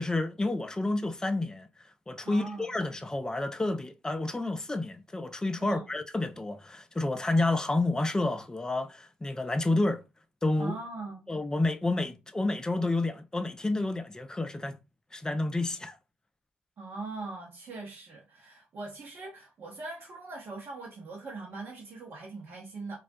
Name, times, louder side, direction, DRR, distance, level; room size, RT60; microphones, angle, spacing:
voice 1, 0.0-1.7 2.1-10.0 10.4-10.7 11.3-14.8 15.1-16.0, left 2 dB, 15° left, 0.4 m, -29 dB
voice 2, 2.2-2.7 5.6-5.9 10.6-11.3 16.8-23.0, right 3 dB, 55° right, 0.8 m, -41 dB
2.3 x 2.1 x 2.5 m
hypercardioid pair, 45°, 5 cm